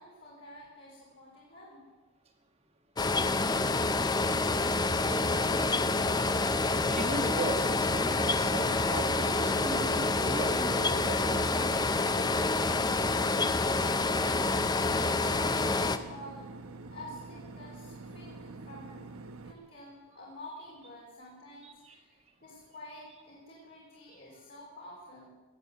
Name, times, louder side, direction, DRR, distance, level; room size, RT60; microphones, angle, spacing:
voice 1, 0.0-1.9 14.9-16.5 16.9-19.2 19.4-25.3, left 1 dB, 50° left, -5 dB, 3.6 m, -49 dB
sound 1, 3.0-16.0, left 3 dB, 20° left, 0.5 m, -28 dB
sound 2, 3.5-19.5, right 3 dB, 80° right, 1.0 m, -46 dB
voice 2, 6.9-11.9 21.6-21.7, right 2 dB, 25° right, 5 dB, 1.5 m, -37 dB
18.0 x 7.7 x 7.9 m, 1.3 s
head